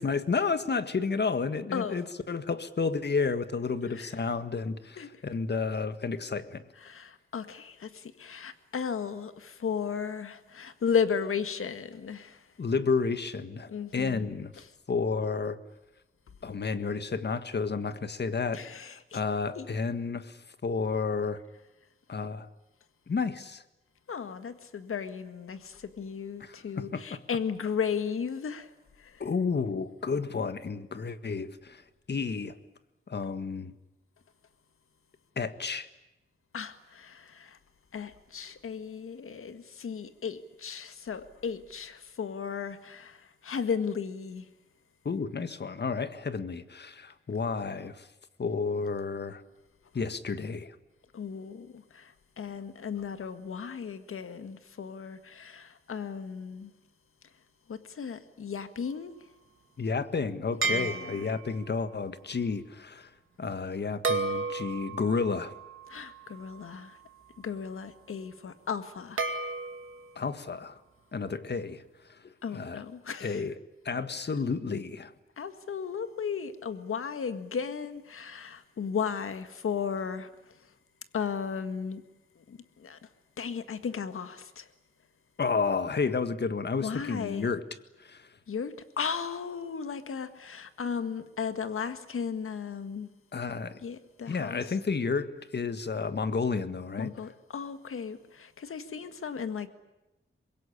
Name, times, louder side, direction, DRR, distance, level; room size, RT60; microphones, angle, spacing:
voice 1, 0.0-6.6 12.6-14.5 14.9-15.6 16.4-21.4 22.1-22.5 23.1-23.6 26.4-27.2 29.2-31.8 32.1-32.6 33.1-33.7 35.4-35.9 45.1-48.1 48.4-49.4 49.9-50.8 59.8-63.1 63.4-65.5 70.2-70.8 71.1-71.8 72.1-72.8 73.2-73.6 73.9-75.1 85.4-87.6 88.0-88.3 93.3-93.8 94.3-97.1, left 4 dB, 55° left, 1.7 m, -31 dB
voice 2, 6.8-12.4 13.7-14.7 18.5-19.2 19.6-19.7 24.1-28.7 29.0-29.2 36.5-37.6 37.9-44.5 51.1-56.7 57.7-59.2 60.7-61.4 65.9-67.0 67.4-69.3 72.4-73.4 75.4-80.3 81.1-82.0 82.4-83.0 83.4-84.7 86.8-87.5 88.5-93.1 93.8-94.6 97.0-99.7, left 6 dB, 80° left, 1.8 m, -35 dB
sound 1, 60.6-61.6 64.0-67.2 69.2-70.1, right 3 dB, 70° right, 2.4 m, -33 dB
25.0 x 22.0 x 10.0 m
wide cardioid pair, 100°, 21 cm